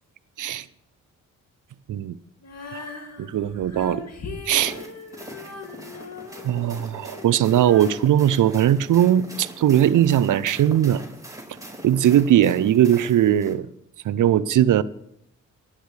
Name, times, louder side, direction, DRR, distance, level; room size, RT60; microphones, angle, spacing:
Female singing, 2.4-9.5, left 3 dB, 45° left, 2.4 m, -40 dB
voice 1, 3.3-4.0 4.5-4.7 6.4-11.0 11.8-13.7 14.0-14.8, right 11 dB, 60° right, 18 dB, 0.6 m, -19 dB
sound 1, 4.4-13.5, right 1 dB, 10° right, 4.6 m, -42 dB
18.0 x 9.8 x 3.3 m, 0.73 s
supercardioid pair, 50°, 35 cm